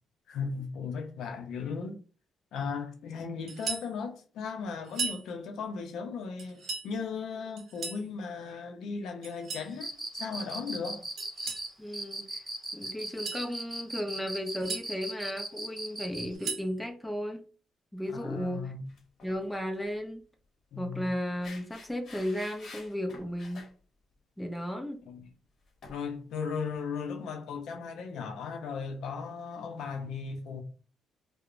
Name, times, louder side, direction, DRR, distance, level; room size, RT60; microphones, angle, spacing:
voice 1, 0.3-2.0 2.5-11.0 18.1-18.8 20.7-21.1 25.1-25.3 25.9-30.6, left 5 dB, 80° left, 0.5 m, -37 dB
sound 1, 3.5-3.9 4.8-5.2 6.4-6.9 7.6-8.1 9.2-9.7 11.2-11.7 13.0-13.5 14.3-14.8 16.1-16.7, right 5 dB, 65° right, 0.7 m, -37 dB
Cricket, 9.7-16.3, right 2 dB, 15° right, 1.5 m, -38 dB
voice 2, 11.8-12.4 12.7-17.4 17.9-18.7 19.2-20.2 20.8-23.7 24.4-25.0, equal, 5° left, 0.5 m, -35 dB
sound 2, 18.9-19.4 19.7-19.9 21.4-23.7 25.8-26.0, left 3 dB, 55° left, 0.8 m, -49 dB
2.8 x 2.0 x 2.4 m
cardioid pair, 90°, 0 cm